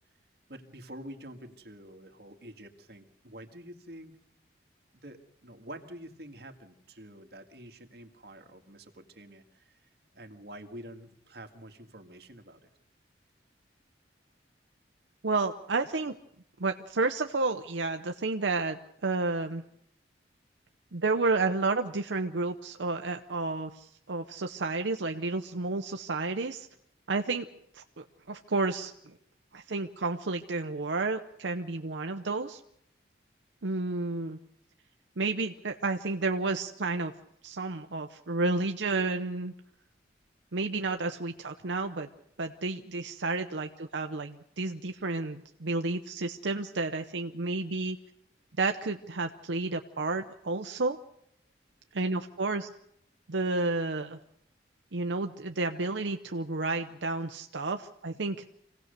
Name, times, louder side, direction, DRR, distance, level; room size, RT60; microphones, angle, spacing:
voice 1, 0.5-4.1 4.9-9.9 10.1-12.7, right 1 dB, 60° right, 5 dB, 2.0 m, -47 dB
voice 2, 15.2-16.1 16.6-19.6 20.9-26.7 27.1-27.5 27.7-29.1 29.5-32.6 33.6-34.4 35.2-37.1 37.4-39.5 40.5-42.1 42.4-48.0 48.6-51.0 51.9-52.7 53.3-54.2 54.9-58.4, right 3 dB, 85° right, 6 dB, 0.9 m, -31 dB
26.5 x 17.5 x 6.7 m, 0.75 s
head